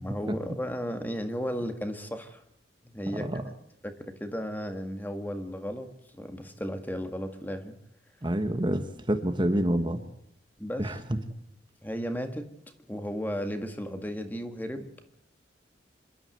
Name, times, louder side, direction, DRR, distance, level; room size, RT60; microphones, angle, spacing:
voice 1, 0.0-2.4 2.9-3.3 3.8-7.8 10.6-11.3 11.8-12.5 12.9-14.9, equal, 10° left, 7 dB, 1.8 m, -35 dB
voice 2, 3.1-3.4 8.2-10.0 10.8-11.0, right 1 dB, 25° right, 7 dB, 1.4 m, -27 dB
26.5 x 12.5 x 7.8 m, 0.74 s
head